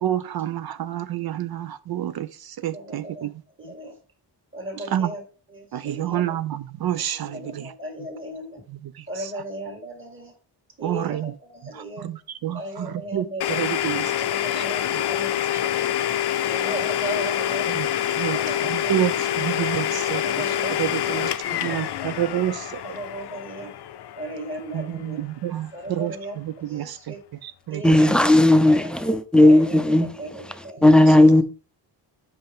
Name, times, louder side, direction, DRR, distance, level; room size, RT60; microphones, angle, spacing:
voice 1, 0.0-3.3 4.9-5.1 5.7-7.7 8.7-9.3 10.8-11.3 11.7-14.1 14.5-14.6 14.9-15.0 17.8-18.4 18.7-20.2 20.8-21.3 21.6-22.8 24.7-27.1 27.4-28.1 30.8-31.2, right 12 dB, 65° right, 0.5 m, -29 dB
voice 2, 2.7-3.3 3.6-4.0 4.5-5.2 5.5-6.4 7.1-8.6 9.1-10.3 10.8-12.1 12.5-13.6 14.2-15.9 16.5-17.7 18.2-19.4 20.1-22.1 22.8-23.7 24.2-25.3 25.7-27.2 27.7-28.9 29.4-31.4, right 1 dB, 30° right, 2.0 m, -36 dB
Domestic sounds home sounds, 13.4-25.1, left 11 dB, 70° left, 0.6 m, -26 dB
voice 3, 27.8-30.1 30.8-31.4, left 1 dB, ahead, 0.5 m, -15 dB
8.0 x 5.1 x 3.6 m
wide cardioid pair, 155°, 42 cm